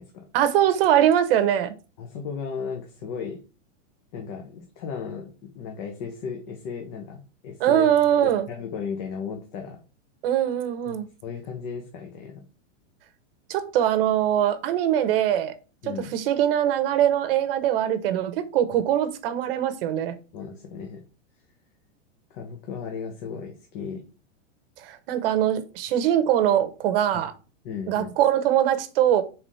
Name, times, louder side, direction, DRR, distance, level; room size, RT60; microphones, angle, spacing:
voice 1, 0.3-1.7 7.6-8.5 10.2-11.1 13.5-15.5 15.8-20.1 24.8-27.3 27.9-29.2, right 11 dB, 50° right, 0.9 m, -22 dB
voice 2, 2.0-3.4 4.1-7.9 8.2-9.8 10.9-12.4 15.8-16.1 18.7-18.8 20.3-21.0 22.3-24.0 27.6-28.1, left 6 dB, 40° left, 1.1 m, -35 dB
4.8 x 3.7 x 5.4 m
supercardioid pair, 160°, 37 cm